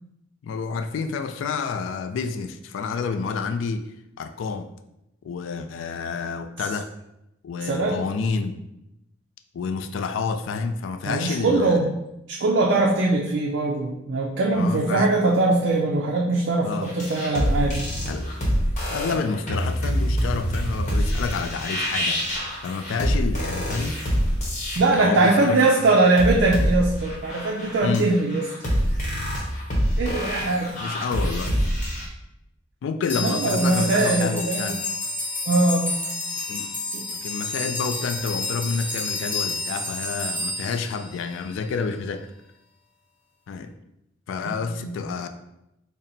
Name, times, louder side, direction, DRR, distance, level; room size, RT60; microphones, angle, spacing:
voice 1, 0.4-3.8 4.2-4.7 5.2-6.9 7.4-8.6 9.5-11.8 14.5-15.1 16.6-16.9 18.1-18.3 18.8-22.2 22.6-24.0 25.0-25.6 27.8-28.1 30.7-31.5 32.8-34.8 36.5-36.7 37.2-42.2 43.5-43.7 44.3-45.3, left 5 dB, 85° left, 8 dB, 0.3 m, -29 dB
voice 2, 7.6-8.0 11.1-11.9 12.3-17.8 24.8-28.7 30.0-30.8 33.2-34.7 35.5-35.9 36.9-37.1 44.8-45.0, right 2 dB, 65° right, -1 dB, 0.4 m, -21 dB
sound 1, 16.9-32.0, equal, 40° left, 0.9 m, -26 dB
sound 2, 33.0-41.5, left 2 dB, 10° left, 0.8 m, -30 dB
4.2 x 2.0 x 3.9 m, 0.87 s
head